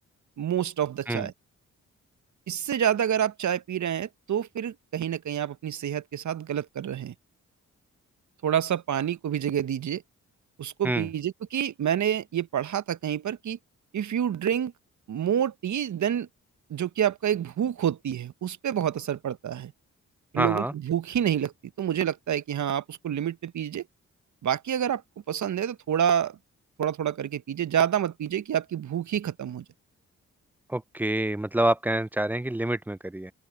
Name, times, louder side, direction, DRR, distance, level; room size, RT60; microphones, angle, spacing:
voice 1, 0.4-1.3 2.5-7.1 8.4-10.0 10.6-13.6 13.9-14.7 15.1-16.3 16.7-19.7 20.3-21.5 21.8-23.8 24.4-25.0 25.3-26.4 26.8-29.6, right 9 dB, 55° right, 0.9 m, -28 dB
voice 2, 20.4-20.7 30.7-33.3, right 1 dB, 5° right, 0.3 m, -27 dB
open air
supercardioid pair, 40°, 34 cm